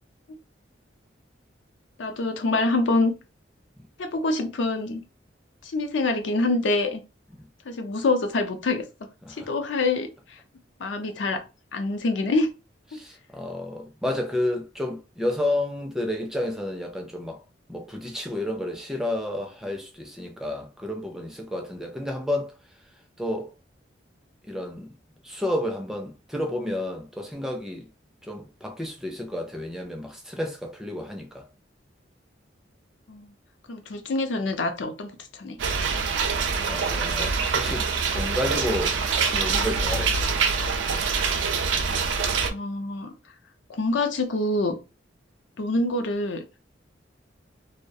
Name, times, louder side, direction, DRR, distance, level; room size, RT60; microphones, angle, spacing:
voice 1, 2.0-3.1 4.0-5.0 5.6-7.0 7.7-8.8 9.4-10.4 10.8-11.4 11.7-12.5 33.1-33.3 33.7-35.6 42.5-43.1 43.7-44.8 45.6-46.4, left 2 dB, 80° left, 0.5 m, -26 dB
voice 2, 12.9-17.4 17.7-22.8 23.2-23.5 24.4-24.9 25.2-27.9 28.2-31.5 36.7-39.0 39.3-40.2, left 1 dB, 5° right, 0.3 m, -31 dB
sound 1, 35.6-42.5, right 5 dB, 85° right, 0.4 m, -25 dB
2.3 x 2.0 x 2.6 m
head